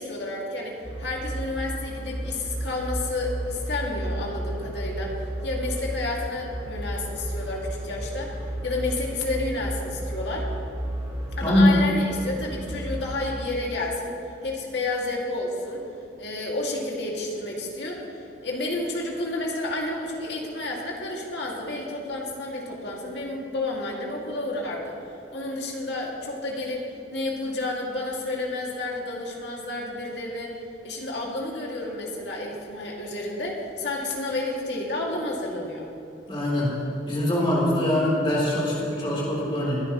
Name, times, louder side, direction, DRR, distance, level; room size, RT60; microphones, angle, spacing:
voice 1, 0.0-5.2 5.4-10.5 11.4-15.8 16.2-25.0 25.3-26.9 27.1-30.5 30.8-35.9, left 2 dB, 70° left, -1 dB, 2.2 m, -31 dB
sound 1, 0.8-13.3, right 1 dB, 25° right, 1.7 m, -33 dB
voice 2, 36.3-36.7 37.1-39.8, left 1 dB, 30° left, -5 dB, 3.3 m, -22 dB
22.0 x 10.0 x 3.0 m, 2.8 s
head